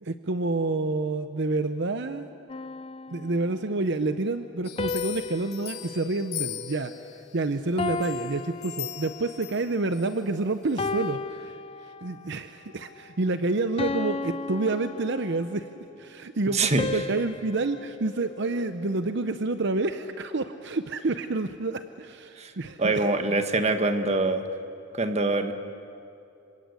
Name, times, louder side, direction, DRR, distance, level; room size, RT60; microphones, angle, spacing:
voice 1, 0.0-2.3 3.1-23.4, right 3 dB, 60° right, 9 dB, 0.8 m, -29 dB
sound 1, 2.5-3.8 4.8-7.3 7.8-9.5 10.1-10.3 10.8-12.3 12.8-13.1 13.8-15.7 16.8-19.2, left 4 dB, 30° left, 0.6 m, -35 dB
sound 2, 4.6-7.2 7.8-10.1 10.6-10.7, left 12 dB, 55° left, 2.3 m, -39 dB
voice 2, 16.5-16.9 22.4-22.5 22.8-24.4 24.9-25.5, right 2 dB, 35° right, 7 dB, 1.5 m, -24 dB
27.5 x 25.5 x 8.3 m, 2.7 s
head